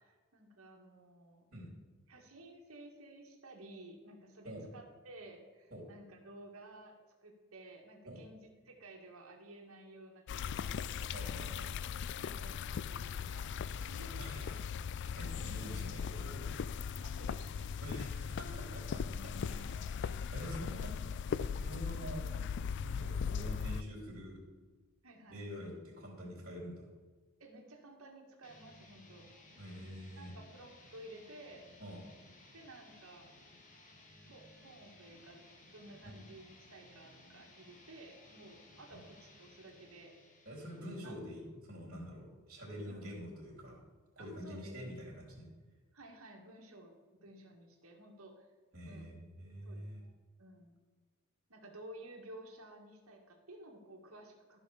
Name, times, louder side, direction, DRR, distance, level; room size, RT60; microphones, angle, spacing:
voice 1, 0.0-1.5 2.1-7.0 7.2-11.6 12.2-14.5 17.0-17.8 18.5-18.7 19.7-19.8 25.0-25.4 27.4-29.6 30.2-31.7 32.5-33.3 34.2-35.4 35.7-40.1 40.7-41.1 42.8-43.2 44.2-44.8 45.9-48.5 48.8-49.2 49.6-49.8 50.4-50.8 51.5-54.6, right 1 dB, 70° right, 1 dB, 1.9 m, -54 dB
sound 1, 10.3-23.8, left 6 dB, 55° left, 0.3 m, -39 dB
voice 2, 11.1-11.7 14.2-14.5 15.1-16.5 17.8-19.0 19.3-19.8 20.3-21.0 21.6-22.3 22.8-24.4 25.3-26.9 29.6-30.3 31.8-32.0 38.9-39.0 40.4-43.8 44.1-45.5 48.7-50.0, equal, 45° right, -5 dB, 3.1 m, -46 dB
sound 2, 28.4-41.3, left 2 dB, 35° left, 1.6 m, -60 dB
13.5 x 6.1 x 5.1 m, 1.4 s
head